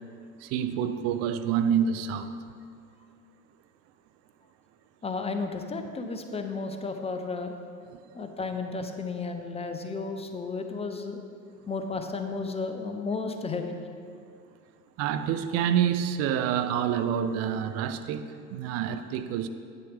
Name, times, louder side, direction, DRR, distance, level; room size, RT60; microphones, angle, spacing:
voice 1, 0.4-2.3 15.0-19.5, right 8 dB, 35° right, 0.4 m, -27 dB
voice 2, 5.0-7.5 8.1-11.2 11.7-13.7, left 4 dB, 15° left, 0.6 m, -33 dB
9.4 x 8.5 x 3.4 m
hypercardioid pair, 80°, 48 cm